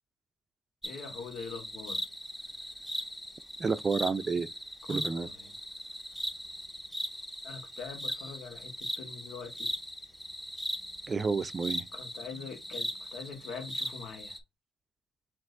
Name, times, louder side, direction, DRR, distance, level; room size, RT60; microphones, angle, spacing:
voice 1, 0.8-2.0 4.9-5.5 7.4-9.7 11.9-14.4, left 5 dB, 80° left, 1.2 m, -43 dB
sound 1, 0.8-14.4, equal, 5° left, 0.7 m, -39 dB
voice 2, 3.6-4.5 4.9-5.3 11.1-11.8, right 4 dB, 35° right, 0.4 m, -30 dB
6.0 x 2.6 x 2.5 m
cardioid pair, 90°, 0 cm